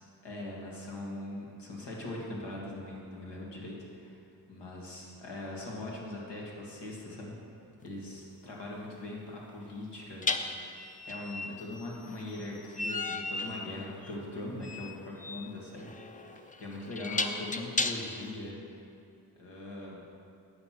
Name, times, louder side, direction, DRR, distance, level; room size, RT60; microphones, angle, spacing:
voice 1, 0.2-4.2 4.5-7.4 7.8-10.8 11.1-15.9 16.6-18.6 19.4-20.0, left 2 dB, 80° left, -3 dB, 2.0 m, -41 dB
sound 1, 7.8-8.0 10.2-18.3, left 3 dB, 20° left, 0.4 m, -35 dB
9.3 x 6.0 x 7.6 m, 2.5 s
wide cardioid pair, 130°, 41 cm